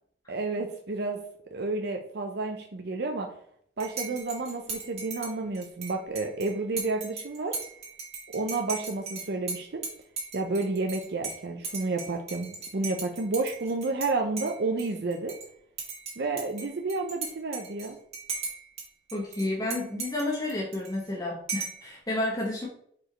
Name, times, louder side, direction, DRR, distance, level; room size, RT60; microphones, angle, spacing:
voice 1, 0.3-1.2 1.5-3.3 3.8-7.6 8.3-9.8 10.3-15.4 16.2-18.0, right 3 dB, 60° right, 3 dB, 0.6 m, -30 dB
Dishes pots and pans / Cutlery silverware / Chink clink, 3.8-14.1 14.4-15.5 15.8-18.8 19.1-21.1 21.5-21.9, right 4 dB, 35° right, 1.9 m, -38 dB
voice 2, 19.1-22.7, left 2 dB, 20° left, -3 dB, 1.0 m, -31 dB
4.8 x 4.8 x 4.3 m, 0.66 s
head